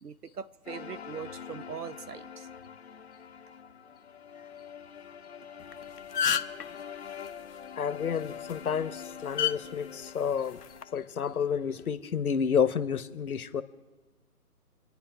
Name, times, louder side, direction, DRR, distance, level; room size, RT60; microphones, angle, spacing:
voice 1, 0.0-2.5, right 6 dB, 85° right, 15 dB, 1.0 m, -41 dB
sound 1, 0.7-11.9, left 8 dB, 45° left, 0.7 m, -45 dB
sound 2, 5.6-5.7 6.0-6.6 8.3-8.5 9.4-9.5 10.6-10.8, left 8 dB, 85° left, 0.8 m, -27 dB
voice 2, 7.8-10.6 10.9-13.6, left 7 dB, 70° left, 13 dB, 1.1 m, -30 dB
28.5 x 10.0 x 4.8 m, 1.2 s
hypercardioid pair, 160°, 46 cm